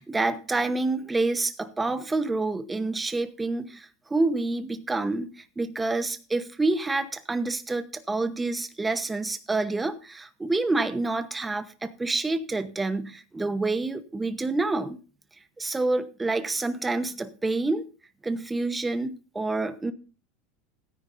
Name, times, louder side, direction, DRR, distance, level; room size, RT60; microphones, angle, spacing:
voice 1, 0.0-15.0 15.6-17.9 18.2-19.9, right 2 dB, 10° right, 11 dB, 0.9 m, -28 dB
16.5 x 9.8 x 2.6 m, 0.35 s
supercardioid pair, 135°, 0 cm